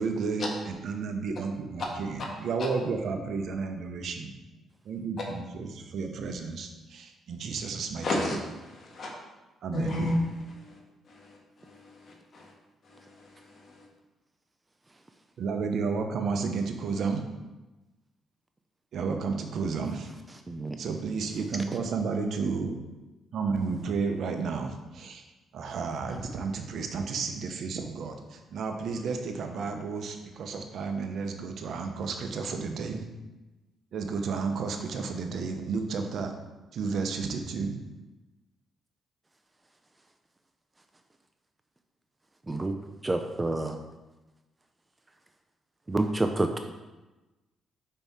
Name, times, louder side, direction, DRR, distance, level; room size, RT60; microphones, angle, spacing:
voice 1, 0.0-4.3 4.8-8.3 9.6-10.1 15.4-17.2 18.9-20.1 20.8-22.8 23.3-25.2 25.5-33.0 33.9-36.3 36.7-37.7, right 4 dB, 65° right, 5 dB, 0.7 m, -32 dB
voice 2, 8.0-9.1 9.7-10.2 10.5-10.8 11.1-12.5 12.8-13.8, left 1 dB, 50° left, -1 dB, 1.5 m, -33 dB
voice 3, 20.5-20.8 42.5-43.8 45.9-46.6, right 2 dB, 20° right, 6 dB, 0.4 m, -28 dB
5.5 x 4.6 x 4.2 m, 1.1 s
cardioid pair, 90°, 0 cm